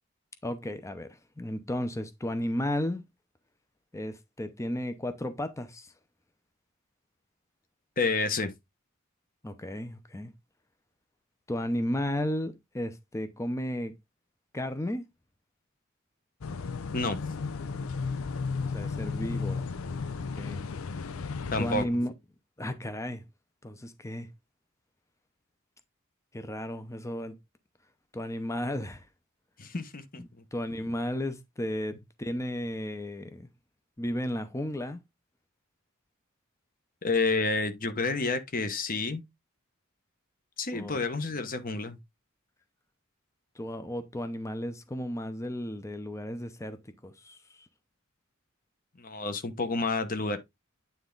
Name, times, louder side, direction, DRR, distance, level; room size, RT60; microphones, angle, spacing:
voice 1, 0.4-3.0 3.9-5.9 9.4-10.3 11.5-13.9 14.5-15.0 18.6-19.6 20.4-20.6 21.6-22.1 22.6-23.2 23.6-24.3 26.3-27.4 28.1-29.1 30.2-33.5 34.0-35.0 40.7-41.0 43.5-47.7, left 1 dB, 15° left, 0.7 m, -34 dB
voice 2, 8.0-8.5 16.9-17.2 21.5-21.8 29.6-30.4 37.0-39.2 40.6-42.0 49.0-50.4, left 3 dB, 45° left, 1.1 m, -29 dB
sound 1, 16.4-21.9, left 4 dB, 75° left, 0.6 m, -34 dB
9.3 x 3.5 x 3.8 m
head